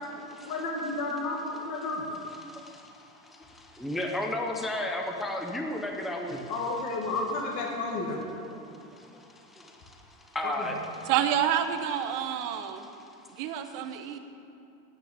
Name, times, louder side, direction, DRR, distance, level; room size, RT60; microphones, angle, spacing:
voice 1, 0.1-2.2 6.3-8.2 10.4-10.8, left 2 dB, 40° left, -1 dB, 2.1 m, -32 dB
voice 2, 2.4-6.5 8.5-11.1 12.1-13.2 13.6-14.2, left 1 dB, ahead, 2 dB, 0.6 m, -36 dB
voice 3, 11.1-12.9 13.4-14.2, right 10 dB, 45° right, 7 dB, 1.0 m, -28 dB
9.6 x 9.3 x 8.6 m, 2.7 s
supercardioid pair, 140°, 46 cm